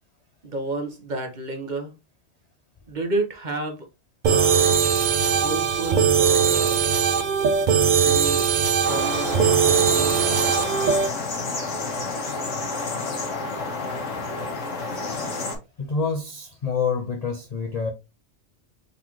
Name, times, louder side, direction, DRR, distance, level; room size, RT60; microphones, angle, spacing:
voice 1, 0.4-1.9 2.9-3.8 4.3-4.9 5.3-7.0 8.0-10.4, right 2 dB, 40° right, 1.1 m, -31 dB
sound 1, 4.2-11.1, right 7 dB, 60° right, 0.5 m, -20 dB
sound 2, 8.8-15.6, left 3 dB, 85° left, 1.6 m, -30 dB
voice 2, 15.8-17.9, left 5 dB, 45° left, 0.5 m, -27 dB
3.9 x 3.8 x 3.0 m
omnidirectional pair, 1.2 m